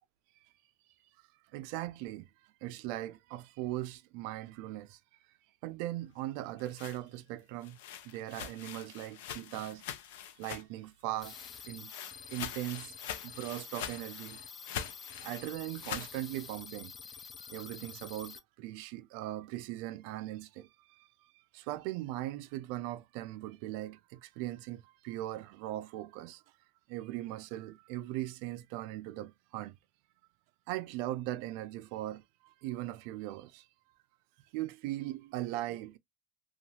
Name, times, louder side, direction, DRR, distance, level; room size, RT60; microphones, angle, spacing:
voice 1, 1.5-2.3 2.6-5.0 5.6-7.8 8.0-9.8 10.4-11.4 11.7-11.9 12.3-12.9 13.2-14.4 15.2-16.9 17.5-21.1 21.5-26.4 26.9-29.8 30.7-33.7 34.5-36.0, right 15 dB, 70° right, 0.3 m, -39 dB
sound 1, 6.4-10.9 11.2-16.1, left 9 dB, 85° left, 0.5 m, -44 dB
sound 2, 11.2-18.4, left 6 dB, 25° left, 0.4 m, -48 dB
2.7 x 2.3 x 2.6 m
supercardioid pair, 130°, 0 cm